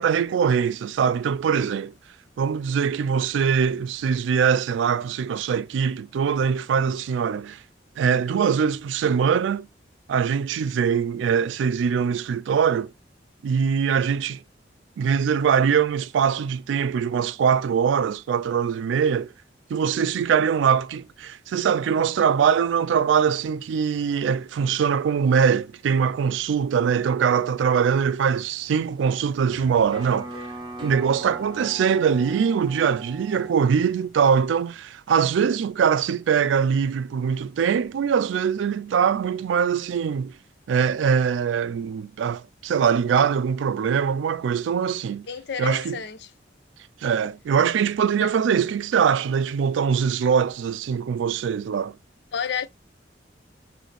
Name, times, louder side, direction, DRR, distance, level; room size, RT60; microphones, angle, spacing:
voice 1, 0.0-1.9 2.4-7.6 8.0-9.7 10.1-12.9 13.4-14.4 15.0-19.3 19.7-30.3 30.8-40.3 40.7-45.3 45.6-46.0 47.0-52.0, right 7 dB, 85° right, 0.3 m, -22 dB
sound 1, 28.1-33.6, right 1 dB, 25° right, 0.9 m, -40 dB
voice 2, 45.3-46.3 48.1-48.3 52.3-52.7, left 7 dB, 65° left, 0.5 m, -30 dB
3.3 x 2.7 x 3.9 m
head